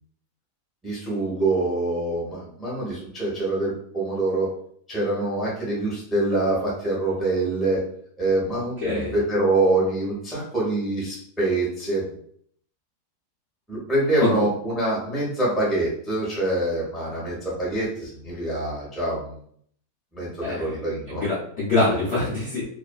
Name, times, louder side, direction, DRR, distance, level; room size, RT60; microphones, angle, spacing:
voice 1, 0.8-4.5 4.9-7.8 8.2-12.0 13.7-19.4 20.1-21.2, right 2 dB, ahead, -6 dB, 0.6 m, -25 dB
voice 2, 8.8-9.2 14.2-14.4 20.4-22.7, left 2 dB, 60° left, -7 dB, 0.7 m, -25 dB
2.5 x 2.5 x 2.2 m, 0.63 s
omnidirectional pair, 1.7 m